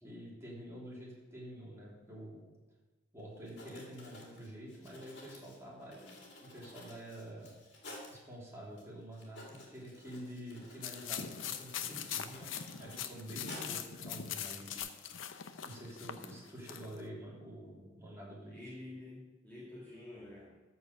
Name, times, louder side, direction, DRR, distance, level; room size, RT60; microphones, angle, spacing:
voice 1, 0.0-2.4 3.1-7.5 8.1-14.7 15.6-18.7, right 1 dB, 15° right, -5 dB, 3.0 m, -48 dB
Writing, 3.2-3.3 3.4-8.2 8.8-8.9 9.1-13.9 14.2-14.8, left 2 dB, 60° left, 2.4 m, -53 dB
sound 1, 10.8-17.0, left 8 dB, 80° left, 0.7 m, -42 dB
voice 2, 18.4-20.6, left 1 dB, 10° left, -8 dB, 1.8 m, -49 dB
13.5 x 4.8 x 6.3 m, 1.2 s
head